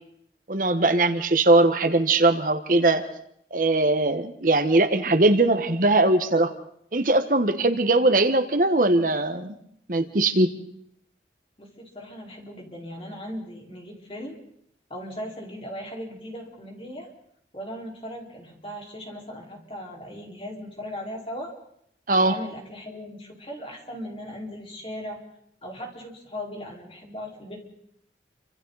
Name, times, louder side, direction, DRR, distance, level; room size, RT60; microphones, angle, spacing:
voice 1, 0.5-3.0 3.5-6.5 6.9-9.6 9.9-10.5 22.1-22.4, right 2 dB, 50° right, 9 dB, 1.2 m, -20 dB
voice 2, 11.6-14.4 14.9-17.1 17.5-21.5 22.1-25.2 25.6-27.6, equal, 30° left, 0 dB, 4.5 m, -38 dB
29.0 x 25.5 x 4.1 m, 0.71 s
head